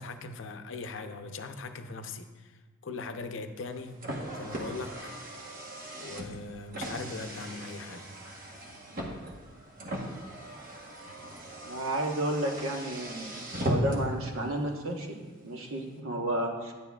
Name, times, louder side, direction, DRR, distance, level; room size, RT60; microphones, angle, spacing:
voice 1, 0.0-4.0 4.3-5.1 6.0-8.1, left 3 dB, 60° left, 7 dB, 0.6 m, -40 dB
Car, 3.6-14.2, equal, 40° right, 1.1 m, -37 dB
voice 2, 11.6-13.3 13.6-16.7, right 1 dB, 80° right, 1 dB, 1.1 m, -32 dB
9.8 x 9.5 x 2.3 m, 1.3 s
head